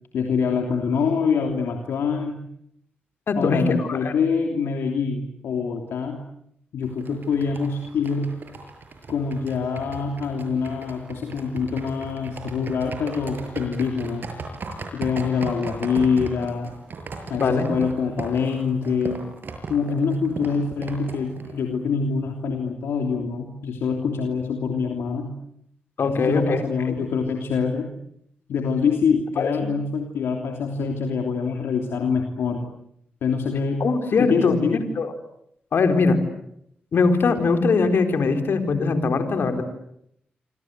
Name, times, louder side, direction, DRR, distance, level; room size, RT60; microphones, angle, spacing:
voice 1, 0.1-2.4 3.4-6.2 6.7-8.3 9.1-14.3 14.9-16.7 17.3-19.2 19.7-25.3 26.0-27.9 28.5-32.6 33.2-33.8 34.2-34.8, left 5 dB, 85° left, 3 dB, 3.1 m, -25 dB
voice 2, 3.3-4.1 17.4-17.7 26.0-26.6 26.9-27.0 29.4-29.5 33.8-34.5 35.0-35.1 35.7-36.2 36.9-39.6, left 4 dB, 65° left, 6 dB, 4.4 m, -21 dB
sound 1, 6.8-21.8, right 3 dB, 60° right, 6.6 m, -37 dB
28.0 x 25.5 x 8.1 m, 0.74 s
cardioid pair, 55°, 4 cm